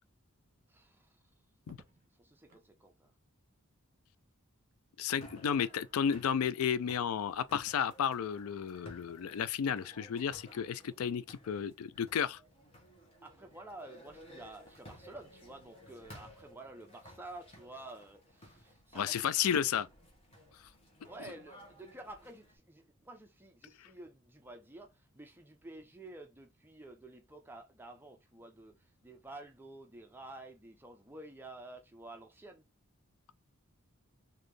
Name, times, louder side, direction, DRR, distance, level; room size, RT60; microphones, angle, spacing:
voice 1, 0.7-1.2 2.1-3.1 13.2-19.3 21.0-32.6, right 2 dB, 10° right, 0.5 m, -51 dB
Crackle, 1.6-2.7 4.3-4.9, right 2 dB, 40° right, 1.2 m, -61 dB
voice 2, 5.0-12.4 18.9-19.9, left 8 dB, 80° left, 0.4 m, -32 dB
sound 1, 5.2-22.6, equal, 25° left, 1.2 m, -57 dB
4.0 x 2.7 x 3.2 m
head